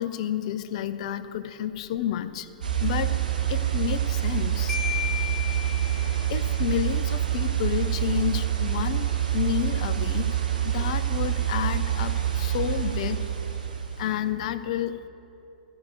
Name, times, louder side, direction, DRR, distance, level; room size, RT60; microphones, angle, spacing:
voice 1, 0.0-2.5 2.8-3.2 3.5-4.8 6.3-10.4 10.6-13.4 14.0-15.1, left 11 dB, 50° left, 12 dB, 0.5 m, -30 dB
sound 1, 2.6-14.3, right 11 dB, 75° right, 1.1 m, -26 dB
Marimba xylophone, 4.7-6.4, left 10 dB, 5° left, 2.4 m, -33 dB
12.0 x 4.9 x 8.7 m, 2.9 s
figure-of-eight pair, 105°, 5 cm